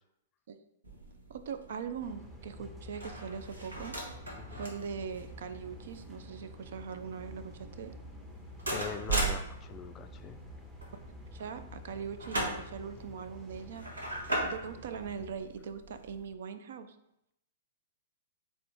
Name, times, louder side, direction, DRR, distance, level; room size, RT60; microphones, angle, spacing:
sound 1, 0.8-16.3, right 2 dB, 85° right, 1.2 m, -40 dB
voice 1, 1.3-4.0 4.5-7.9 11.3-13.9 14.4-17.0, right 6 dB, 60° right, 10 dB, 0.4 m, -41 dB
sound 2, 2.0-15.3, equal, 5° right, 0.7 m, -49 dB
voice 2, 8.7-10.4, left 6 dB, 25° left, 9 dB, 0.3 m, -42 dB
3.7 x 3.6 x 3.4 m, 0.82 s
figure-of-eight pair, 110°, 0 cm